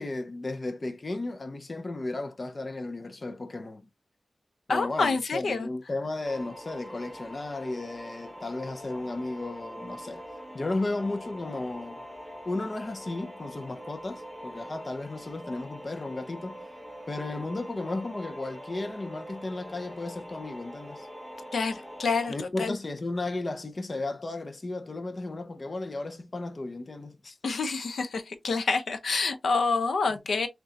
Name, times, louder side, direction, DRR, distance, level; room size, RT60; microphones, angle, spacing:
voice 1, 0.0-3.9 4.7-10.2 10.5-12.0 12.5-16.7 17.1-21.1 22.3-27.4 30.1-30.2, left 2 dB, 30° left, 0.5 m, -34 dB
voice 2, 4.7-5.7 21.5-22.3 22.6-22.8 27.4-30.5, left 4 dB, 65° left, 0.7 m, -27 dB
sound 1, 6.2-22.3, equal, ahead, 0.9 m, -44 dB
6.2 x 2.3 x 2.6 m
wide cardioid pair, 140°, 0 cm